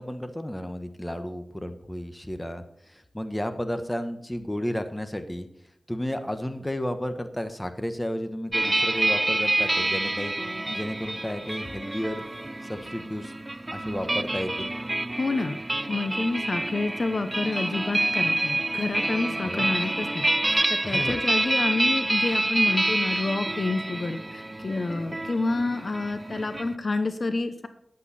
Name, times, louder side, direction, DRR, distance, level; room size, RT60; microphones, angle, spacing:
voice 1, 0.0-5.5 5.9-10.3 10.7-12.2 12.7-13.3 13.7-14.7 19.5-19.7 20.8-21.2, equal, 10° left, 8 dB, 1.2 m, -32 dB
sound 1, 8.5-26.7, right 2 dB, 25° right, 0.3 m, -27 dB
voice 2, 15.2-15.6 15.9-20.3 20.7-27.7, left 3 dB, 55° left, 9 dB, 0.9 m, -28 dB
10.5 x 8.6 x 4.3 m, 0.78 s
wide cardioid pair, 65°, 0 cm